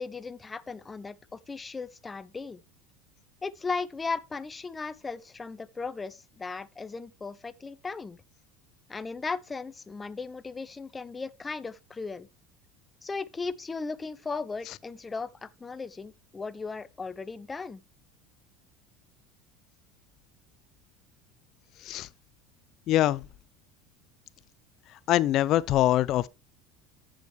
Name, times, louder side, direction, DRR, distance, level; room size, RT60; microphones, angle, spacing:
voice 1, 0.0-2.6 3.4-8.2 8.9-12.3 13.0-17.8, left 4 dB, 20° left, 0.8 m, -36 dB
voice 2, 22.9-23.2 25.1-26.3, left 14 dB, 55° left, 0.5 m, -23 dB
14.5 x 5.1 x 3.2 m
hypercardioid pair, 80°, 0 cm